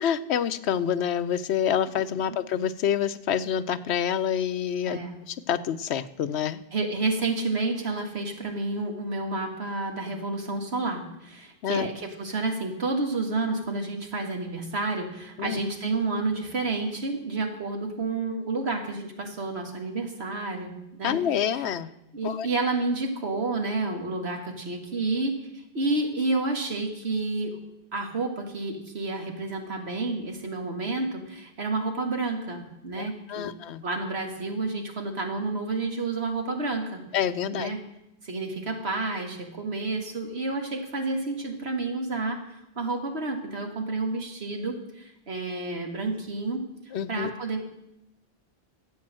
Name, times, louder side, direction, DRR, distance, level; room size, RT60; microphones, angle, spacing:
voice 1, 0.0-5.0 5.3-6.6 11.6-11.9 15.4-15.6 21.0-21.9 22.2-22.5 33.0-33.8 37.1-37.7 46.9-47.3, left 9 dB, 85° left, 14 dB, 1.0 m, -27 dB
voice 2, 4.8-5.2 6.7-20.7 21.0-21.2 21.4-21.7 22.1-27.6 27.9-33.5 33.8-37.0 37.5-37.8 38.2-46.6 47.1-47.6, right 3 dB, 75° right, 3 dB, 2.3 m, -30 dB
13.0 x 8.3 x 7.6 m, 0.85 s
omnidirectional pair, 1.1 m